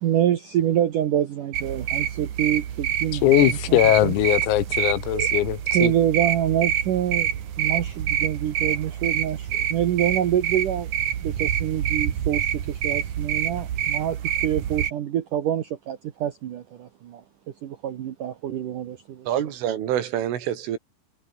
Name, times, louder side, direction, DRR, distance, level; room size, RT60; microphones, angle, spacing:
voice 1, 0.0-4.1 5.1-5.3 5.7-7.3 7.6-10.9 11.2-17.2 17.6-19.3, right 10 dB, 90° right, 1.8 m, -26 dB
sound 1, 1.5-14.9, right 9 dB, 55° right, 2.3 m, -27 dB
voice 2, 3.1-5.9, left 14 dB, 85° left, 4.3 m, -20 dB
voice 3, 19.3-20.8, right 10 dB, 70° right, 4.9 m, -26 dB
omnidirectional pair, 6.0 m